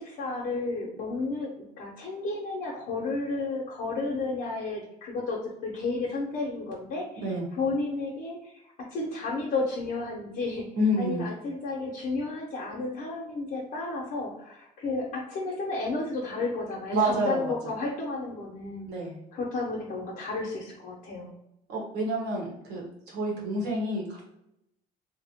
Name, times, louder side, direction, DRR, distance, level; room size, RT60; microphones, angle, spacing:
voice 1, 0.0-10.7 11.0-18.9 19.3-21.3, left 3 dB, 55° left, -3 dB, 0.7 m, -32 dB
voice 2, 10.8-11.2 16.9-17.5 18.9-19.2 21.7-24.2, equal, 85° right, -2 dB, 1.1 m, -28 dB
2.9 x 2.1 x 2.7 m, 0.82 s
cardioid pair, 110°, 17 cm